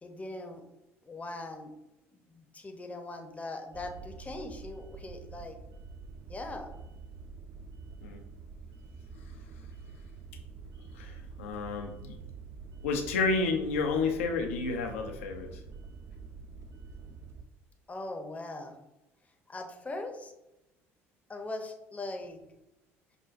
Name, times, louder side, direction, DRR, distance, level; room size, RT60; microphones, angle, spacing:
voice 1, 0.0-0.6 1.0-1.7 2.1-5.6 6.3-6.7 17.9-18.7 19.5-20.3 21.3-22.4, left 2 dB, 20° left, 4 dB, 0.7 m, -40 dB
sound 1, 3.7-17.4, right 4 dB, 45° right, 0.3 m, -47 dB
voice 2, 10.9-12.1 12.8-15.6, left 4 dB, 90° left, 4 dB, 0.5 m, -31 dB
5.8 x 2.2 x 2.5 m, 0.92 s
hypercardioid pair, 65°, 7 cm